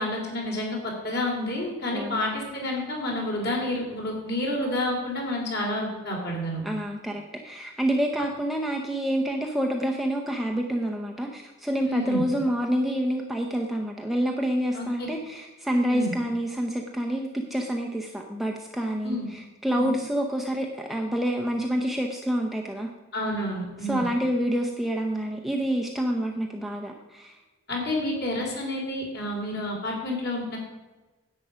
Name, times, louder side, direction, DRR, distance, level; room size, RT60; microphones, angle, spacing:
voice 1, 0.0-6.6 11.8-12.2 14.7-14.8 15.9-16.1 19.0-19.3 19.7-19.9 23.1-24.0 27.7-30.6, left 1 dB, 50° left, -1 dB, 3.0 m, -29 dB
voice 2, 1.9-2.3 6.6-22.9 23.8-27.3, equal, ahead, 0 dB, 0.7 m, -28 dB
10.5 x 8.1 x 5.0 m, 1.2 s
head